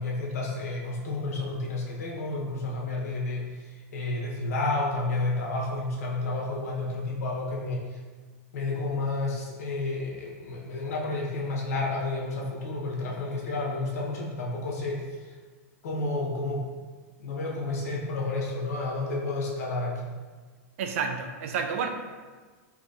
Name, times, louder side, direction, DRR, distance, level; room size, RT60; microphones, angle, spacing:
voice 1, 0.0-8.0 8.5-15.3 15.8-16.6 17.2-19.9, left 2 dB, 80° left, -3 dB, 0.9 m, -31 dB
voice 2, 20.8-21.9, right 6 dB, 60° right, 5 dB, 0.4 m, -30 dB
3.8 x 2.8 x 2.6 m, 1.4 s
supercardioid pair, 160°, 8 cm